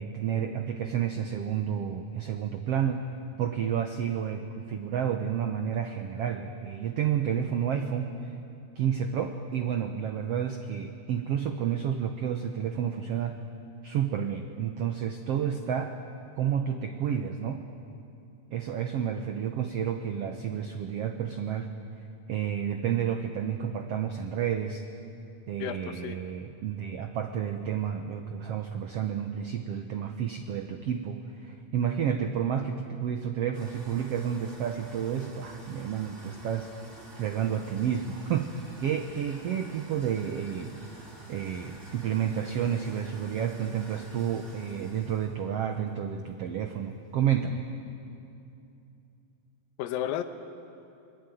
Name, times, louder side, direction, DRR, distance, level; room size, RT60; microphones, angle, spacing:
voice 1, 0.0-3.0 3.4-8.1 8.8-13.4 13.8-16.0 16.4-17.6 18.5-21.7 22.3-24.8 25.5-36.7 37.1-38.5 38.8-40.7 41.3-47.6, right 8 dB, 85° right, 6 dB, 1.3 m, -30 dB
voice 2, 25.6-26.2 49.8-50.2, left 12 dB, 75° left, 8 dB, 2.7 m, -32 dB
sound 1, 33.5-47.5, right 1 dB, 20° right, 3.1 m, -50 dB
25.0 x 22.0 x 9.3 m, 2.7 s
omnidirectional pair, 4.2 m